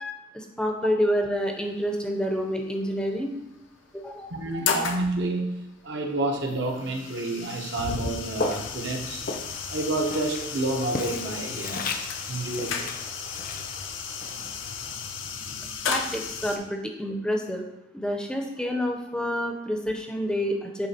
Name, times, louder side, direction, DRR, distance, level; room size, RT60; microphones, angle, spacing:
voice 1, 0.0-3.3 3.9-4.3 15.9-17.7 17.9-20.9, equal, 5° left, 2 dB, 0.6 m, -28 dB
sound 1, 1.6-1.9 3.0-3.1 3.6-3.7 4.3-5.1 6.2-16.6, left 6 dB, 80° left, 0.7 m, -33 dB
voice 2, 4.3-9.2 9.7-12.0 12.3-12.9 14.4-14.5, right 2 dB, 65° right, 2 dB, 0.9 m, -29 dB
Walk footsteps, 8.3-15.5, left 3 dB, 45° left, 0.6 m, -36 dB
8.5 x 3.4 x 4.2 m, 0.94 s
head